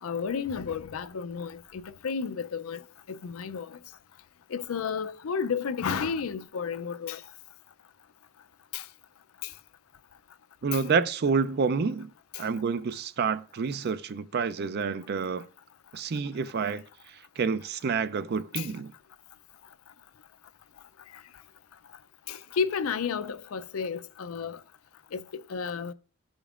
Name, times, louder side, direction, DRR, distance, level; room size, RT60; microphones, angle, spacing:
voice 1, 0.0-2.8 3.1-3.8 4.5-7.2 8.7-8.9 9.4-9.5 10.7-10.8 12.3-12.4 18.6-18.7 22.3-24.6 25.1-25.2 25.5-25.9, left 6 dB, 75° left, 0.5 m, -32 dB
voice 2, 10.6-12.1 12.4-15.5 15.9-16.8 17.4-18.9, right 5 dB, 50° right, 0.4 m, -28 dB
14.0 x 5.2 x 2.4 m
head